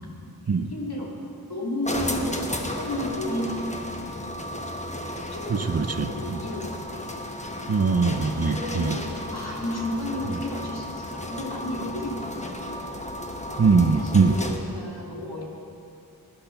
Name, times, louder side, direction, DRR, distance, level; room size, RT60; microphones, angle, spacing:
voice 1, 0.5-1.1 1.5-3.9 5.2-7.1 8.5-12.6 14.0-15.4, left 1 dB, 80° left, -3 dB, 2.3 m, -33 dB
sound 1, 1.8-14.8, left 1 dB, 20° left, 1.1 m, -34 dB
voice 2, 5.5-6.4 7.7-8.9 13.6-14.3, right 4 dB, 40° right, 10 dB, 0.6 m, -22 dB
12.5 x 11.0 x 5.8 m, 2.7 s
wide cardioid pair, 45°, 38 cm